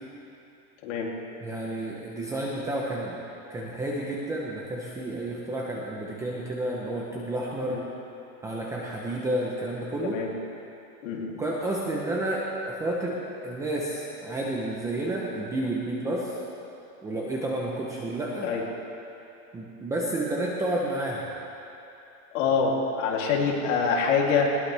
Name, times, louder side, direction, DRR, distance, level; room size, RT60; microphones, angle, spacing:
voice 1, 1.4-3.2 3.5-7.8 8.4-10.2 11.4-16.4 17.0-18.5 19.5-21.3, right 1 dB, 5° right, -4 dB, 0.7 m, -30 dB
voice 2, 11.0-11.3 18.4-18.6 22.3-24.6, left 5 dB, 55° left, -2 dB, 3.0 m, -25 dB
20.5 x 18.5 x 3.4 m, 2.8 s
supercardioid pair, 170°, 45 cm